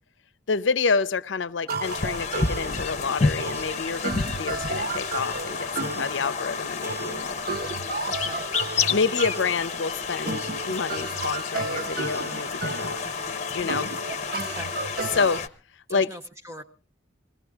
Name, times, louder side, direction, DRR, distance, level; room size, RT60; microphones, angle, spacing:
voice 1, 0.5-4.1 4.4-7.4 8.7-13.0 13.5-13.9 15.1-15.4 15.9-16.1, left 5 dB, 85° left, 16 dB, 0.7 m, -28 dB
sound 1, 1.7-15.4, right 3 dB, 55° right, 0.9 m, -34 dB
sound 2, 1.8-15.5, left 5 dB, 40° left, 0.8 m, -30 dB
voice 2, 8.1-8.4 8.8-9.0 13.6-14.0 14.4-14.7 15.1-15.2 15.9-16.6, equal, 15° right, 5 dB, 0.7 m, -41 dB
21.5 x 16.0 x 3.5 m, 0.36 s
head